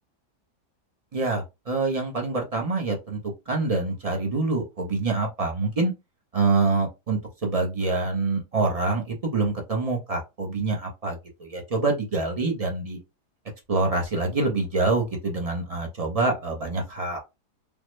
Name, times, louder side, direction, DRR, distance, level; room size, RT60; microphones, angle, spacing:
voice 1, 1.1-3.2 3.5-5.9 6.3-13.0 13.7-17.2, right 3 dB, 45° right, 1 dB, 0.4 m, -26 dB
3.4 x 2.0 x 3.1 m, 0.24 s
omnidirectional pair, 1.8 m